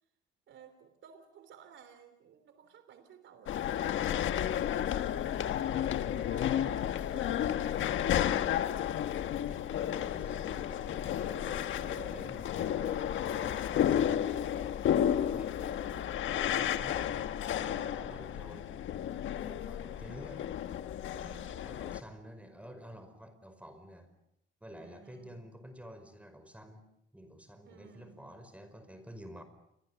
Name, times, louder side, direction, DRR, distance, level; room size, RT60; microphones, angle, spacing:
voice 1, 0.5-3.8 4.1-5.6 6.1-8.8 17.6-18.5 20.0-20.3 21.2-21.6 24.8-25.4 27.6-28.3, right 7 dB, 70° right, 9 dB, 3.4 m, -56 dB
sound 1, 3.5-22.0, left 10 dB, 75° left, 1.4 m, -32 dB
voice 2, 6.2-7.1 9.5-14.5 15.2-18.8 19.3-20.4 21.1-24.2 24.6-26.9 27.1-29.4, equal, 5° right, 9 dB, 5.3 m, -50 dB
29.5 x 24.5 x 7.1 m, 0.83 s
cardioid pair, 90°, 20 cm